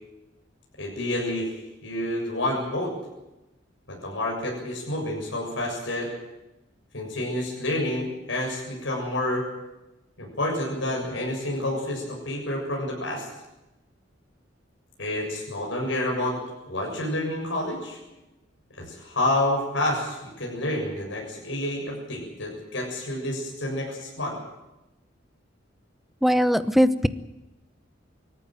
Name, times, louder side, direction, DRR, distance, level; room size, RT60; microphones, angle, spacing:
voice 1, 0.8-1.5 1.8-2.9 3.9-6.1 6.9-9.4 10.2-13.3 15.0-16.4 16.7-18.0 18.8-24.4, left 1 dB, 75° left, -1 dB, 7.2 m, -29 dB
voice 2, 26.2-27.1, equal, ahead, 12 dB, 0.9 m, -20 dB
25.5 x 14.5 x 9.0 m, 0.96 s
head